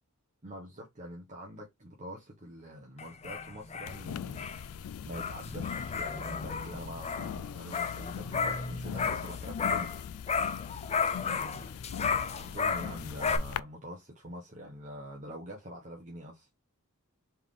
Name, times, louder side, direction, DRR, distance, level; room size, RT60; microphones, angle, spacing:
voice 1, 0.4-9.9 11.2-11.7 12.3-16.5, equal, 35° right, 1.1 m, -45 dB
sound 1, 3.0-10.0 10.3-13.4, left 5 dB, 30° left, 0.6 m, -34 dB
sound 2, 3.9-13.6, left 8 dB, 75° left, 0.3 m, -41 dB
4.5 x 3.7 x 3.2 m
head